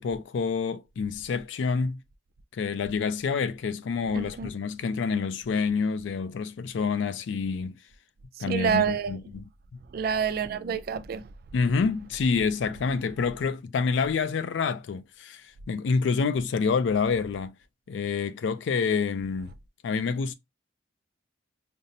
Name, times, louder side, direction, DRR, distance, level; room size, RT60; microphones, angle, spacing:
voice 1, 0.0-2.0 2.5-7.8 8.4-9.4 11.5-17.5 17.9-19.5 19.8-20.3, left 5 dB, 75° left, 0.4 m, -27 dB
voice 2, 4.1-4.5 8.5-9.2 9.9-11.2, right 7 dB, 50° right, 0.3 m, -27 dB
5.1 x 2.0 x 2.7 m
head